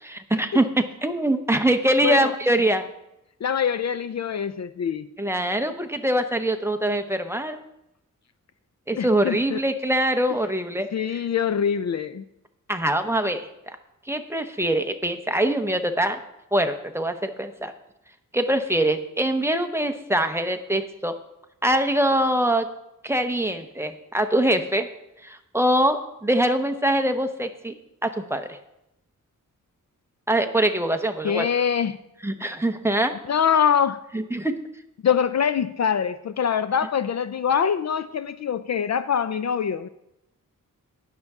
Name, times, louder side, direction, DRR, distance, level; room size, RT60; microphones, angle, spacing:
voice 1, 0.0-2.9 5.2-7.6 8.9-10.9 11.1-11.2 12.7-13.5 14.1-16.2 16.5-17.7 18.3-21.1 21.6-22.7 23.0-24.9 25.2-27.8 28.0-28.6 30.3-31.5 32.2-33.1 34.1-34.5, right 1 dB, 10° right, 6 dB, 0.8 m, -23 dB
voice 2, 3.4-5.1 9.0-9.6 10.9-12.2 31.2-32.0 33.3-34.0 35.0-39.9, left 7 dB, 55° left, 13 dB, 0.4 m, -24 dB
19.5 x 6.7 x 3.6 m, 0.85 s
wide cardioid pair, 140°, 33 cm